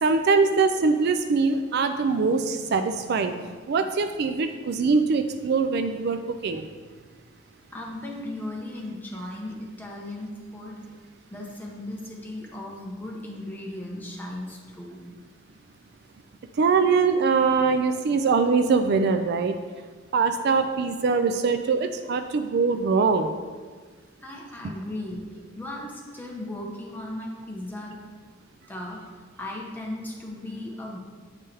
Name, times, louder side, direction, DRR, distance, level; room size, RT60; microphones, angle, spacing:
voice 1, 0.0-6.6 16.6-19.6 20.1-23.3, right 4 dB, 55° right, 8 dB, 0.4 m, -23 dB
voice 2, 7.7-10.9 11.3-15.0 24.2-28.0 28.7-31.0, left 1 dB, 10° left, -2 dB, 1.0 m, -37 dB
8.1 x 5.4 x 3.4 m, 1.5 s
head